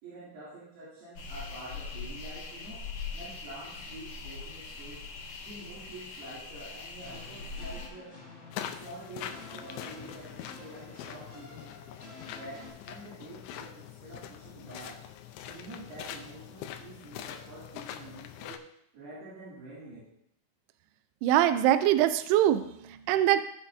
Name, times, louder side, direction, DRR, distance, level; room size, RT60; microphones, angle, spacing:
voice 1, 0.0-2.8 3.1-5.0 5.4-8.2 8.6-11.8 12.3-15.0 15.4-18.7 18.9-20.1, right 2 dB, 65° right, -10 dB, 4.8 m, -47 dB
sound 1, 1.2-7.9, left 4 dB, 60° left, 2.4 m, -41 dB
sound 2, 7.0-12.7, left 3 dB, 25° left, 1.7 m, -49 dB
sound 3, 8.5-18.6, left 10 dB, 90° left, 2.9 m, -43 dB
voice 2, 21.2-23.4, right 12 dB, 85° right, 11 dB, 2.3 m, -23 dB
17.0 x 6.0 x 2.7 m, 0.75 s
omnidirectional pair, 5.1 m